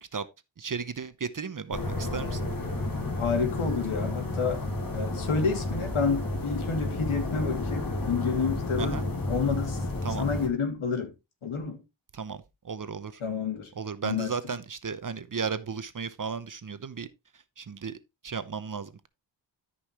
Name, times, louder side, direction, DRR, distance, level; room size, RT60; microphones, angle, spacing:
voice 1, 0.6-2.4 8.8-9.1 10.0-10.3 12.1-13.2 13.8-17.1 17.6-18.0 18.2-19.1, right 6 dB, 40° right, 0.8 m, -35 dB
sound 1, 1.7-10.5, left 2 dB, 45° left, 2.8 m, -31 dB
voice 2, 3.2-4.6 4.9-9.0 9.3-9.8 10.2-11.1 11.4-11.8 13.2-13.7 14.0-14.3, left 5 dB, 85° left, 2.7 m, -29 dB
13.0 x 5.5 x 3.0 m
wide cardioid pair, 90°, 48 cm